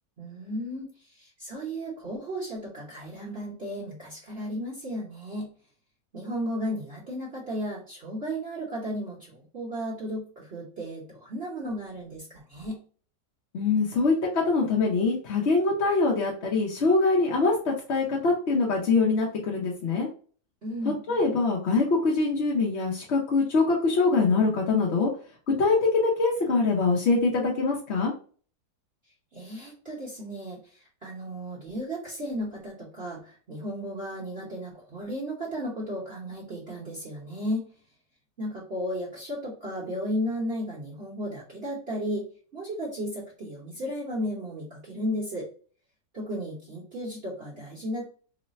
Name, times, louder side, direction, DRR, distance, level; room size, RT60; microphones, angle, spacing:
voice 1, 0.2-5.5 6.1-12.8 20.6-21.0 29.3-37.7 38.4-45.5 46.1-48.0, equal, 40° right, -6 dB, 1.1 m, -34 dB
voice 2, 13.5-20.1 21.1-25.1 25.5-28.1, left 3 dB, 55° left, -3 dB, 0.8 m, -24 dB
3.2 x 2.1 x 4.0 m, 0.41 s
omnidirectional pair, 1.8 m